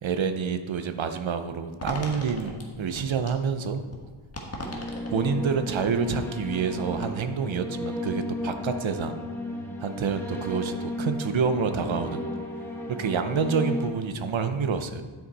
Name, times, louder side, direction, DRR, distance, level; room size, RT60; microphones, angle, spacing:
voice 1, 0.0-3.8 5.1-9.2 9.8-12.2 12.9-15.0, right 6 dB, 65° right, 9 dB, 0.8 m, -28 dB
sound 1, 1.8-7.1, left 1 dB, 30° left, 1.3 m, -40 dB
sound 2, 4.6-13.9, left 1 dB, 5° left, 1.1 m, -34 dB
10.5 x 6.1 x 4.1 m, 1.4 s
wide cardioid pair, 120°, 50 cm